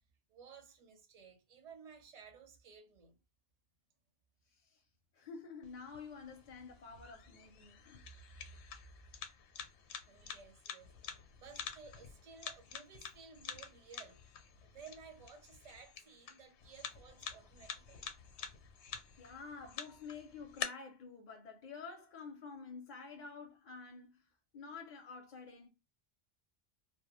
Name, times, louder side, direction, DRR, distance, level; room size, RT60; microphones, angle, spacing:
voice 1, 0.3-3.2 6.6-6.7 7.4-8.6 10.1-18.1, right 5 dB, 40° right, 0.6 m, -57 dB
voice 2, 4.5-4.8 5.1-8.0 19.2-25.7, left 5 dB, 55° left, 0.6 m, -50 dB
sound 1, 5.6-20.6, left 8 dB, 85° left, 0.9 m, -48 dB
2.1 x 2.1 x 2.9 m
omnidirectional pair, 1.1 m